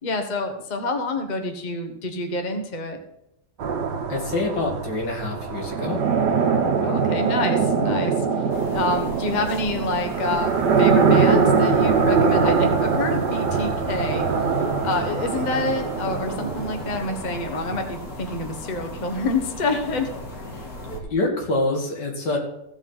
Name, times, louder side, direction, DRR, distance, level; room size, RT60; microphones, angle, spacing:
voice 1, 0.0-3.0 6.8-8.1 8.7-14.3 14.8-20.1, left 2 dB, 30° left, 5 dB, 1.2 m, -27 dB
sound 1, 3.6-17.4, right 5 dB, 80° right, 1.7 m, -22 dB
voice 2, 4.1-6.0 20.9-22.4, left 2 dB, 80° left, 1 dB, 2.7 m, -26 dB
sound 2, 8.5-21.0, left 2 dB, 55° left, 2.5 m, -37 dB
15.5 x 5.3 x 5.7 m, 0.84 s
omnidirectional pair, 1.8 m